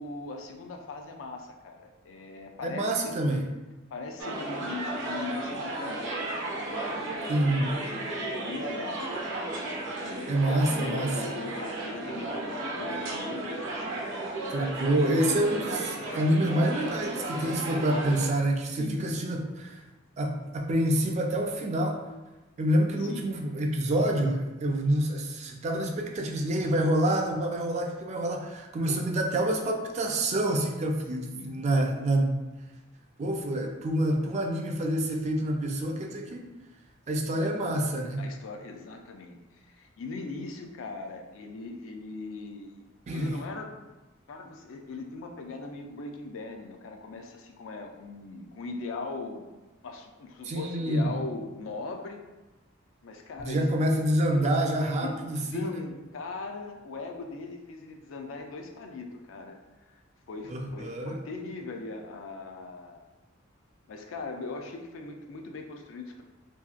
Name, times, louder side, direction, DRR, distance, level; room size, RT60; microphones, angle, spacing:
voice 1, 0.0-3.2 3.9-7.4 8.1-9.2 10.0-14.3 18.8-19.1 23.0-23.3 31.3-31.6 37.3-37.9 38.2-43.8 44.3-49.5 49.8-52.2 53.0-53.6 54.9-60.0 60.3-63.0 63.9-66.2, left 3 dB, 75° left, 3 dB, 0.4 m, -40 dB
voice 2, 2.6-3.5 7.3-7.7 10.3-11.2 14.5-19.8 20.2-22.0 22.6-32.4 33.2-36.5 37.1-38.3 43.1-43.3 50.4-51.1 53.4-55.7 60.5-61.2, right 1 dB, 35° right, 2 dB, 0.3 m, -27 dB
sound 1, 4.2-18.3, right 2 dB, 65° right, 0.7 m, -34 dB
2.8 x 2.6 x 2.4 m, 1.1 s
head